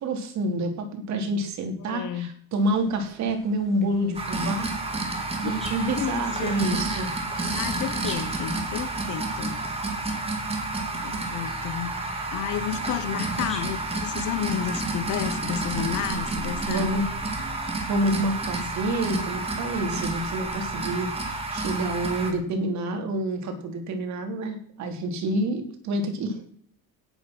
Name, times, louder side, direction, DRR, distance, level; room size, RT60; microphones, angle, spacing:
voice 1, 0.0-4.7 5.4-7.1 16.7-17.0 17.4-26.4, right 1 dB, 55° right, 5 dB, 3.3 m, -28 dB
voice 2, 1.8-2.3 5.4-5.6 6.0-6.8 7.5-9.6 11.0-11.9 12.3-16.9, left 11 dB, 60° left, 15 dB, 1.2 m, -31 dB
sound 1, 2.5-14.5, left 1 dB, ahead, 4.6 m, -49 dB
sound 2, 4.1-22.3, right 2 dB, 15° right, 3.0 m, -30 dB
17.5 x 8.8 x 6.2 m, 0.62 s
cardioid pair, 150°, 34 cm